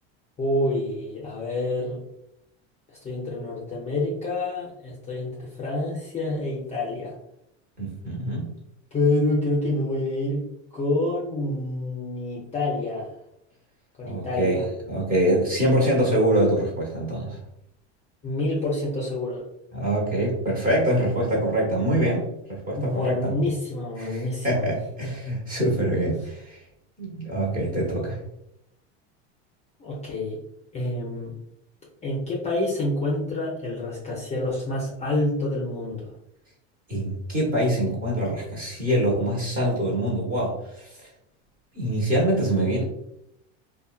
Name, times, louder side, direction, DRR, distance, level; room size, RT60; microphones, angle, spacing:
voice 1, 0.4-2.0 3.0-7.1 8.9-10.4 10.7-13.1 14.0-14.7 18.2-19.4 22.7-24.7 29.8-30.4 30.7-31.3 32.0-36.1, left 2 dB, 20° left, -4 dB, 0.6 m, -27 dB
voice 2, 7.8-8.5 14.0-17.4 19.7-23.3 24.0-26.6 27.0-28.2 36.9-40.9 41.7-42.8, right 1 dB, 25° right, -3 dB, 1.1 m, -24 dB
2.6 x 2.3 x 2.3 m, 0.80 s
supercardioid pair, 120°, 34 cm